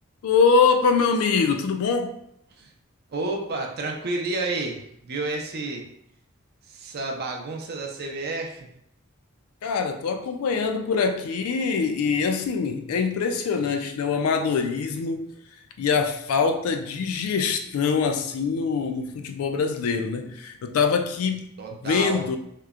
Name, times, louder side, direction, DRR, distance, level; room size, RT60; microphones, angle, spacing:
voice 1, 0.2-2.1 9.6-15.3 15.8-22.4, left 5 dB, 80° left, 6 dB, 0.3 m, -24 dB
voice 2, 3.1-5.8 6.7-8.7 21.6-22.2, right 3 dB, 50° right, 1 dB, 0.4 m, -30 dB
2.9 x 2.1 x 2.3 m, 0.74 s
head